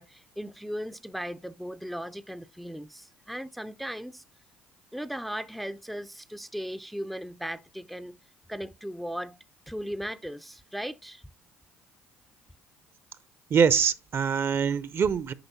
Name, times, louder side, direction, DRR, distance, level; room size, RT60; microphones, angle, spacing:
voice 1, 0.0-4.2 4.9-8.2 8.5-9.4 9.7-11.2, equal, ahead, 0.4 m, -37 dB
voice 2, 13.5-15.3, right 6 dB, 40° right, 0.6 m, -24 dB
8.8 x 5.4 x 2.7 m
hypercardioid pair, 60°, 6 cm